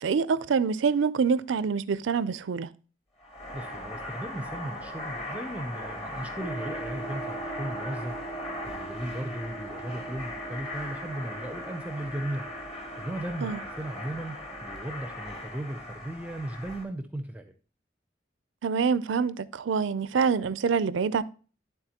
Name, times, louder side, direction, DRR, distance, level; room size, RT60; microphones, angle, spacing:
voice 1, 0.0-2.7 13.4-13.6 18.6-21.2, right 5 dB, 80° right, 0.4 m, -26 dB
sound 1, 3.2-16.8, left 1 dB, 35° left, 1.6 m, -39 dB
voice 2, 3.5-8.2 8.6-12.5 13.0-17.5, right 1 dB, 5° right, 0.5 m, -36 dB
sound 2, 6.4-15.9, right 3 dB, 70° left, 4.0 m, -43 dB
11.5 x 3.8 x 2.8 m
head